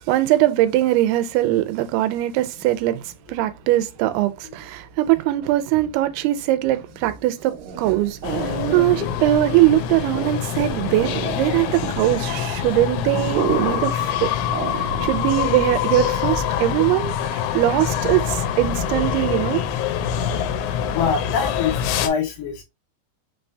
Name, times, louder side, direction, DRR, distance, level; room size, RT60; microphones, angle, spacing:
voice 1, 0.0-14.3 14.6-19.6, right 15 dB, 90° right, 2.6 m, -21 dB
sound 1, 7.4-15.3, right 6 dB, 60° right, 2.1 m, -30 dB
sound 2, 8.2-22.1, left 9 dB, 85° left, 2.6 m, -25 dB
voice 2, 20.9-22.6, left 6 dB, 70° left, 2.9 m, -25 dB
5.9 x 3.3 x 2.6 m
omnidirectional pair, 4.5 m